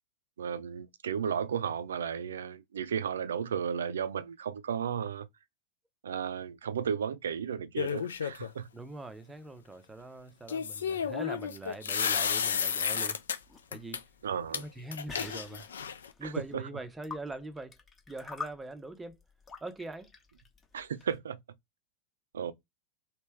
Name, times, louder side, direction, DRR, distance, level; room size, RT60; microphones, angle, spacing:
voice 1, 0.4-5.3 6.0-8.7 14.2-14.6 16.2-16.7 20.7-21.4 22.3-22.5, right 7 dB, 65° right, 0.4 m, -34 dB
sound 1, 7.8-8.5 10.5-13.4 13.7-14.0 14.5-14.6 14.9-16.1, left 7 dB, 65° left, 0.4 m, -32 dB
voice 2, 8.7-13.2 13.7-14.0 14.5-15.7 16.2-17.7 18.1-19.2 19.6-20.1, right 2 dB, 10° right, 0.6 m, -42 dB
sound 2, 13.2-21.2, left 4 dB, 20° left, 0.8 m, -47 dB
3.3 x 2.8 x 3.2 m
figure-of-eight pair, 90°, 0 cm